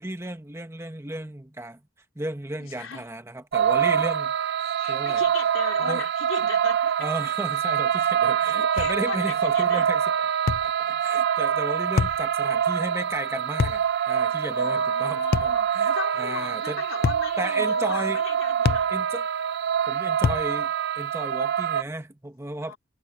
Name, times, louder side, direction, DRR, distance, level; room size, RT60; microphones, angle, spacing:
voice 1, 0.0-1.8 2.1-4.3 4.6-5.2 5.8-6.0 7.0-10.0 10.6-15.9 16.1-16.8 17.4-18.2 18.9-19.2 19.9-22.7, right 1 dB, 15° right, 1.3 m, -34 dB
voice 2, 2.6-3.1 4.8-7.3 8.7-9.9 11.9-12.2 14.4-18.9 22.6-22.8, left 5 dB, 75° left, 3.9 m, -38 dB
sound 1, 3.5-21.8, right 8 dB, 55° right, 0.5 m, -25 dB
sound 2, 8.8-9.0 10.5-10.7 12.0-12.2 13.6-13.8 15.3-15.6 17.0-17.3 18.6-18.9 20.2-20.5, left 5 dB, 50° left, 0.4 m, -24 dB
head